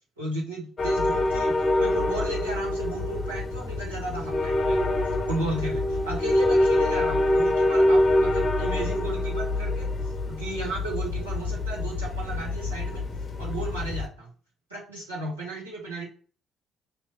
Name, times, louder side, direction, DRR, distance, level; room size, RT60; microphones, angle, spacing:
voice 1, 0.2-5.0 5.3-13.0 13.4-14.3 14.7-16.1, right 2 dB, 90° right, -6 dB, 1.3 m, -34 dB
sound 1, 0.8-14.1, left 1 dB, 35° left, 0.7 m, -25 dB
5.3 x 2.9 x 3.0 m, 0.41 s
figure-of-eight pair, 45°, 0 cm